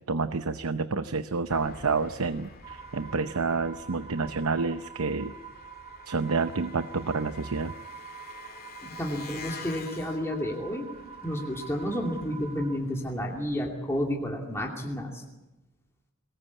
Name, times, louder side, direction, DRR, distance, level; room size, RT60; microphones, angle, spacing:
voice 1, 0.1-5.3 6.1-7.7, right 4 dB, 85° right, 10 dB, 0.8 m, -29 dB
Engine, 1.5-13.7, left 5 dB, 45° left, 2.6 m, -49 dB
sound 1, 2.6-12.8, right 7 dB, 25° right, 1.7 m, -46 dB
voice 2, 8.8-10.9 11.2-15.2, equal, 10° left, -1 dB, 2.7 m, -31 dB
22.5 x 20.0 x 8.4 m, 1.0 s
head